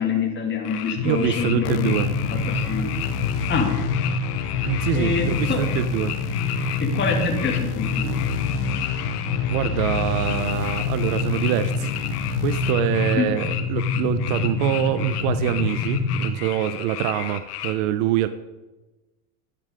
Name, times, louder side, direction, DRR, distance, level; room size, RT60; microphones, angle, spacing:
voice 1, 0.0-1.9 2.3-2.9 3.5-3.8 4.9-5.7 6.8-8.1 13.1-13.3, left 5 dB, 25° left, 1 dB, 2.3 m, -26 dB
sound 1, 0.6-17.7, left 11 dB, 80° left, 1.5 m, -34 dB
sound 2, 1.0-16.2, left 3 dB, 65° left, 2.5 m, -27 dB
voice 2, 1.0-2.1 4.6-6.1 9.5-11.9 12.4-18.3, right 12 dB, 60° right, 13 dB, 0.8 m, -25 dB
sound 3, 1.6-12.7, left 15 dB, 45° left, 0.7 m, -33 dB
11.5 x 9.4 x 5.1 m, 1.1 s
supercardioid pair, 115°, 45 cm